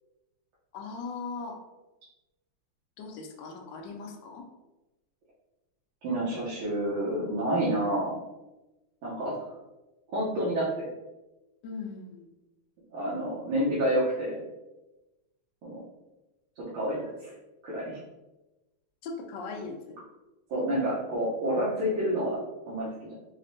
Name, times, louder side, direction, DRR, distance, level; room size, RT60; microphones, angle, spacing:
voice 1, 0.7-1.6 3.0-4.5 11.6-12.3 19.0-20.0, left 4 dB, 75° left, 2 dB, 1.1 m, -39 dB
voice 2, 6.0-8.1 9.0-9.4 10.1-10.9 12.9-14.4 15.6-15.8 16.6-17.3 17.6-18.0 20.5-23.1, right 1 dB, 80° right, -8 dB, 1.7 m, -29 dB
4.8 x 2.1 x 2.6 m, 1.0 s
omnidirectional pair, 2.3 m